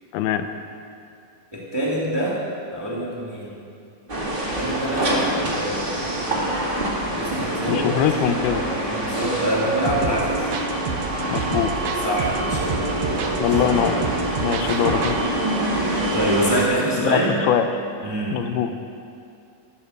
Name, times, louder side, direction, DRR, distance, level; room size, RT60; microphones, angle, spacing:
voice 1, 0.1-0.5 7.7-8.6 11.3-11.7 13.4-14.0 14.4-15.2 17.1-17.7 18.3-18.7, left 9 dB, 80° left, 8 dB, 2.6 m, -22 dB
voice 2, 1.5-2.4 2.7-3.5 4.6-6.0 7.1-7.9 8.8-10.5 12.0-13.4 14.6-14.9 15.6-15.8 16.1-17.4 18.0-18.4, right 1 dB, 10° right, -4 dB, 1.7 m, -25 dB
sound 1, 4.1-16.7, right 1 dB, 35° right, 0.8 m, -25 dB
sound 2, 9.9-15.2, right 6 dB, 85° right, 3.0 m, -30 dB
14.0 x 13.5 x 6.6 m, 2.4 s
omnidirectional pair, 4.4 m